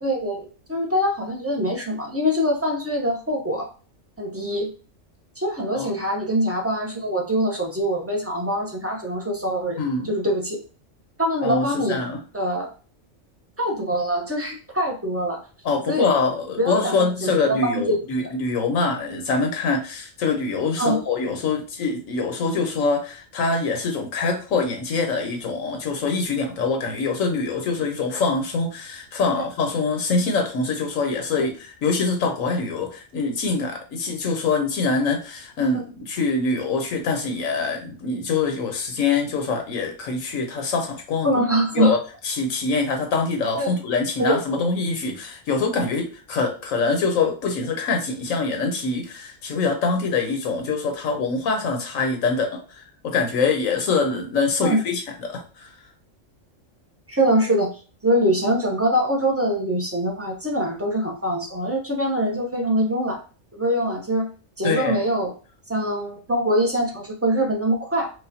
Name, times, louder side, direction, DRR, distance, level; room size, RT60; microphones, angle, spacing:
voice 1, 0.0-3.7 4.2-4.7 5.4-9.8 10.0-10.6 11.2-12.0 12.3-12.7 13.6-15.4 15.9-16.1 16.6-18.3 20.8-21.0 29.3-29.5 35.7-35.8 41.2-42.0 43.6-43.7 44.2-44.6 54.6-54.8 57.1-63.2 63.5-64.3 64.6-65.3 65.7-68.1, equal, 15° right, 0 dB, 0.6 m, -23 dB
voice 2, 9.8-10.1 11.4-12.2 15.6-41.3 41.7-42.0 42.2-55.7 64.6-65.0, left 4 dB, 85° left, 3 dB, 1.3 m, -24 dB
4.8 x 2.3 x 2.7 m, 0.36 s
omnidirectional pair, 1.3 m